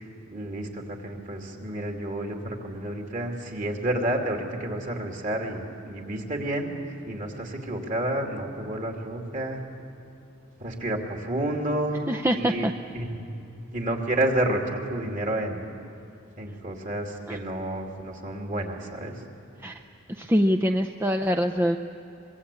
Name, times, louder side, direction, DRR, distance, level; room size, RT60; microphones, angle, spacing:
voice 1, 0.0-9.6 10.6-12.0 12.3-13.2 13.7-15.6 16.4-19.2, right 1 dB, 40° right, 2 dB, 2.8 m, -30 dB
voice 2, 12.1-12.7 17.3-17.4 19.6-19.8 20.1-21.8, equal, 10° right, 4 dB, 0.6 m, -24 dB
24.5 x 22.5 x 8.5 m, 2.9 s
head